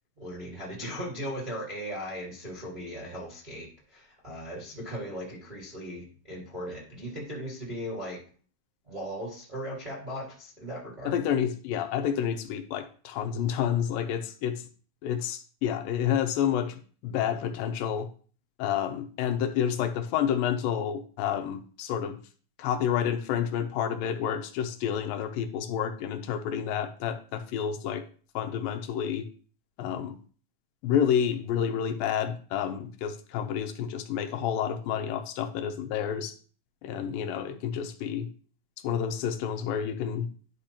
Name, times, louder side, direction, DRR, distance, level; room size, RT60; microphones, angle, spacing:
voice 1, 0.2-8.2 8.9-11.2, equal, 25° right, -4 dB, 0.9 m, -38 dB
voice 2, 11.1-14.6 15.0-18.1 18.6-22.2 22.6-28.0 28.4-29.3 29.8-30.2 30.8-36.3 36.8-38.3 38.8-40.3, left 9 dB, 85° left, 6 dB, 2.5 m, -29 dB
11.0 x 5.0 x 2.9 m, 0.41 s
omnidirectional pair, 4.0 m